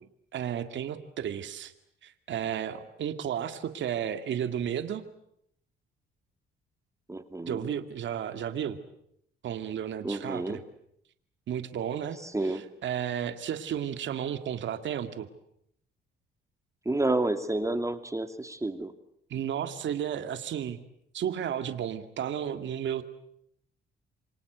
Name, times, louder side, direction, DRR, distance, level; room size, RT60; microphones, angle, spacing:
voice 1, 0.3-1.7 2.0-5.0 7.4-8.8 9.4-10.6 11.5-15.3 19.3-20.8 21.1-23.0, right 9 dB, 70° right, 9 dB, 2.2 m, -33 dB
voice 2, 7.1-7.7 10.0-10.6 12.2-12.6 16.9-18.9, right 2 dB, 15° right, 9 dB, 2.5 m, -30 dB
28.0 x 25.0 x 8.1 m, 0.73 s
cardioid pair, 90°, 20 cm